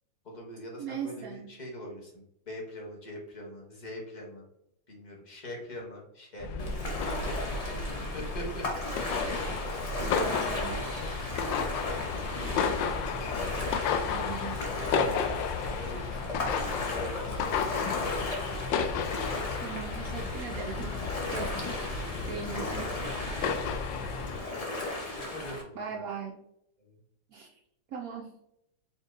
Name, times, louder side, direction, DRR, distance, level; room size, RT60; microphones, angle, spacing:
voice 1, 0.2-4.5 4.9-6.5 8.0-8.6 11.9-12.3 13.1-14.0 14.6-19.1 21.9-22.4 23.6-24.2 24.4-24.8 25.3-26.0 26.8-27.0, equal, 30° left, -2 dB, 1.1 m, -44 dB
voice 2, 0.8-1.5 7.1-7.2 10.1-11.1 14.0-14.6 19.6-20.9 21.3-21.5 22.3-22.9 25.8-26.4 27.3-27.5 27.9-28.3, right 7 dB, 70° right, 0 dB, 0.9 m, -39 dB
sound 1, 6.4-24.4, left 5 dB, 80° left, 1.3 m, -33 dB
Ocean, 6.6-25.6, left 2 dB, 50° left, 0.4 m, -36 dB
4.3 x 3.6 x 2.5 m, 0.77 s
omnidirectional pair, 2.0 m